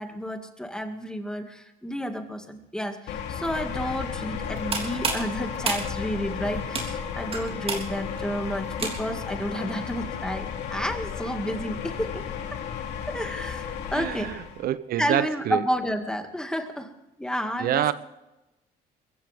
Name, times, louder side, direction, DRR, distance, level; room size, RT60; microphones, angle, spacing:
voice 1, 0.0-12.1 12.5-12.6 13.1-14.4 15.0-16.9 17.2-17.9, equal, 5° left, 5 dB, 2.1 m, -31 dB
sound 1, 3.1-14.7, left 7 dB, 80° left, 2.7 m, -34 dB
sound 2, 4.4-9.3, right 3 dB, 35° right, 3.5 m, -32 dB
voice 2, 13.9-15.6 17.6-17.9, right 12 dB, 65° right, 15 dB, 0.7 m, -26 dB
22.0 x 15.5 x 3.6 m, 0.98 s
cardioid pair, 110°, 17 cm